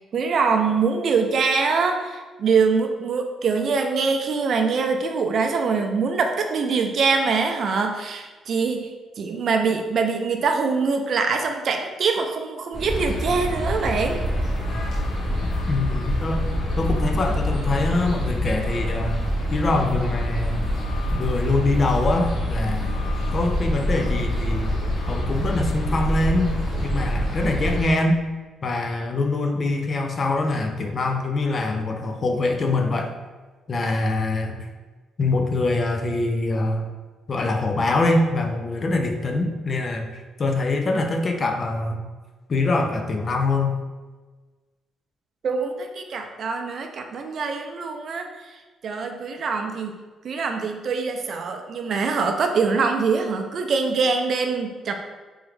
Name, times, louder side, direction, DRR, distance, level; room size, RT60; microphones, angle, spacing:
voice 1, 0.1-14.2 45.4-48.3 48.8-50.0 50.2-55.0, right 4 dB, 55° right, 5 dB, 0.4 m, -24 dB
sound 1, 12.7-27.8, equal, 65° left, 1.4 m, -25 dB
voice 2, 15.7-16.5 16.8-19.2 19.5-20.7 21.1-23.0 23.3-24.7 25.1-26.5 26.8-28.2 28.6-33.1 33.7-34.7 35.2-36.9 37.3-42.0 42.5-43.8, left 2 dB, 40° left, 4 dB, 0.5 m, -24 dB
3.5 x 3.1 x 3.2 m, 1.3 s
cardioid pair, 90°, 0 cm